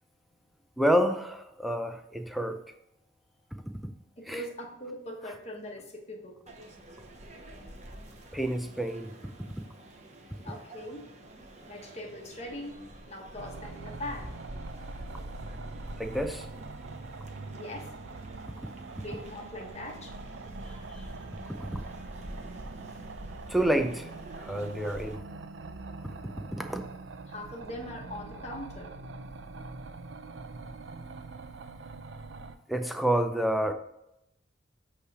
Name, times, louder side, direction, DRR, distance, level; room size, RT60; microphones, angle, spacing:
voice 1, 0.8-2.6 4.3-4.4 8.3-9.1 16.0-16.5 21.6-21.7 23.5-24.1 24.4-25.2 26.5-26.8 32.7-33.7, right 1 dB, ahead, 5 dB, 0.5 m, -28 dB
voice 2, 4.2-6.4 10.4-11.1 11.7-12.8 13.1-14.3 17.5-17.9 18.9-20.1 20.6-21.3 27.3-28.9, left 1 dB, 35° left, 0 dB, 1.4 m, -41 dB
sound 1, 6.5-25.1, right 1 dB, 35° right, 0.9 m, -46 dB
sound 2, 13.4-32.6, right 3 dB, 70° right, 0.5 m, -44 dB
8.3 x 3.3 x 4.9 m, 0.84 s
head